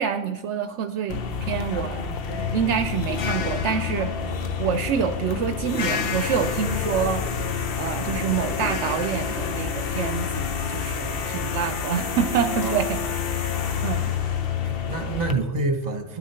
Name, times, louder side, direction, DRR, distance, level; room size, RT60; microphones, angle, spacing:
voice 1, 0.0-2.1 2.5-4.1 4.6-7.3 7.8-13.3 13.8-14.1, right 7 dB, 70° right, 9 dB, 0.8 m, -27 dB
sound 1, 1.1-15.3, left 6 dB, 55° left, 0.9 m, -28 dB
voice 2, 12.4-12.9 14.6-16.2, right 3 dB, 35° right, 7 dB, 1.2 m, -27 dB
13.5 x 10.5 x 4.3 m, 1.1 s
omnidirectional pair, 1.3 m